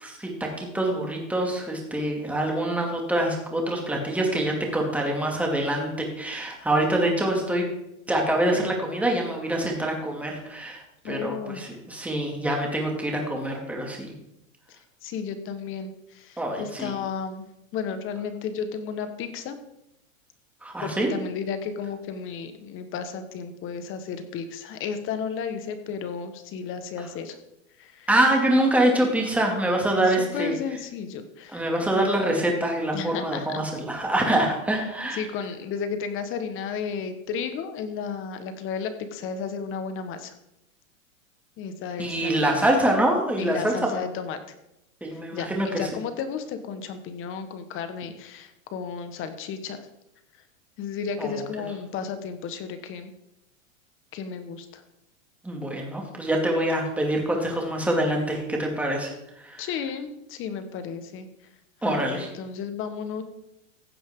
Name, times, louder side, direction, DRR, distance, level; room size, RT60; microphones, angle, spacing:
voice 1, 0.0-7.7 8.1-14.1 16.4-16.9 20.6-21.1 28.1-30.5 31.5-35.2 42.0-44.0 45.0-45.9 51.2-51.4 55.4-59.6 61.8-62.3, right 1 dB, 5° right, 0 dB, 2.4 m, -25 dB
voice 2, 11.0-11.6 14.7-17.5 17.7-19.6 20.8-27.4 27.8-28.1 29.9-32.1 32.9-33.6 35.1-40.3 41.6-42.5 43.4-44.4 45.1-49.9 50.8-53.1 54.1-54.8 59.6-61.3 61.8-63.2, left 6 dB, 30° left, 9 dB, 1.4 m, -33 dB
15.5 x 8.6 x 3.8 m, 0.84 s
hypercardioid pair, 135°, 41 cm